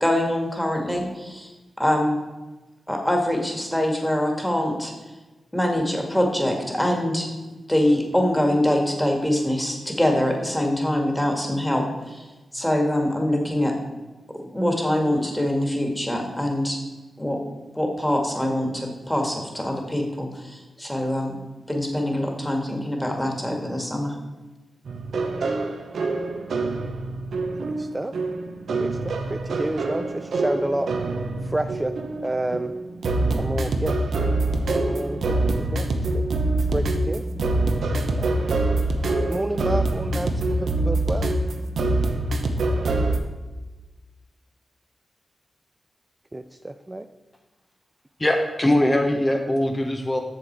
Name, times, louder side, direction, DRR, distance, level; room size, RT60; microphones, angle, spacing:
voice 1, 0.0-1.5 1.8-2.2 2.9-4.9 5.5-7.3 7.7-12.2 12.5-13.7 14.3-16.8 17.2-17.4 17.7-21.4 21.7-24.1, left 1 dB, 10° left, 1 dB, 2.0 m, -24 dB
sound 1, 24.9-43.2, right 2 dB, 80° right, 0.8 m, -25 dB
voice 2, 27.7-28.1 28.8-30.9 31.4-31.9 32.2-32.7 33.4-34.0 34.7-36.2 36.7-37.3 38.1-38.5 39.3-41.3 46.3-47.1, right 1 dB, 20° right, 8 dB, 0.4 m, -30 dB
voice 3, 48.2-50.2, left 1 dB, 25° left, 2 dB, 0.9 m, -21 dB
7.4 x 6.8 x 4.6 m, 1.2 s
cardioid pair, 55°, 0 cm